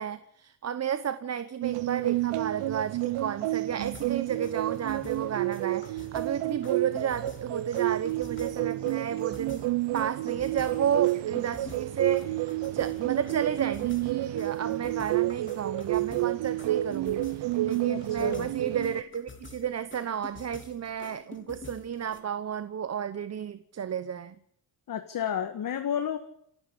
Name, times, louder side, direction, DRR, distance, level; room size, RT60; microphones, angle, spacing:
voice 1, 0.0-9.6 9.9-24.3, right 8 dB, 35° right, 1.0 m, -32 dB
sound 1, 1.6-19.0, right 16 dB, 80° right, 1.0 m, -30 dB
sound 2, 3.8-22.2, left 4 dB, 25° left, 3.2 m, -49 dB
voice 2, 17.9-18.5 24.9-26.2, left 9 dB, 50° left, 1.8 m, -31 dB
28.0 x 12.0 x 8.5 m
cardioid pair, 125°, 42 cm